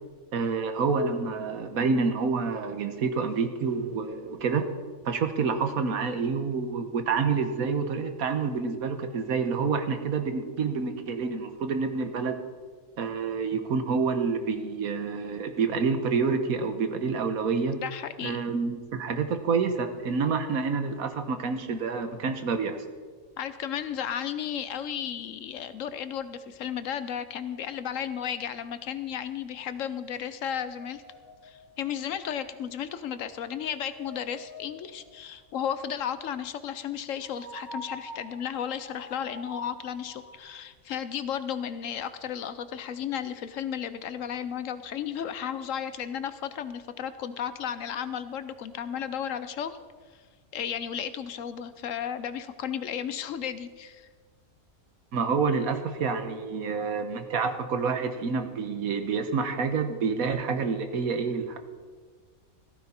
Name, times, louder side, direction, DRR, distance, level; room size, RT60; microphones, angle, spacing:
voice 1, 0.3-4.6 5.0-12.4 13.0-17.8 18.2-22.8 55.1-61.6, right 5 dB, 80° right, 8 dB, 1.5 m, -28 dB
voice 2, 17.8-18.4 23.4-31.0 31.4-49.8 50.5-54.1, left 9 dB, 70° left, 12 dB, 1.1 m, -34 dB
sound 1, 30.8-32.7 33.2-35.3 37.1-40.4, left 1 dB, 85° left, 2.1 m, -46 dB
15.5 x 14.0 x 4.3 m, 1.5 s
omnidirectional pair, 1.5 m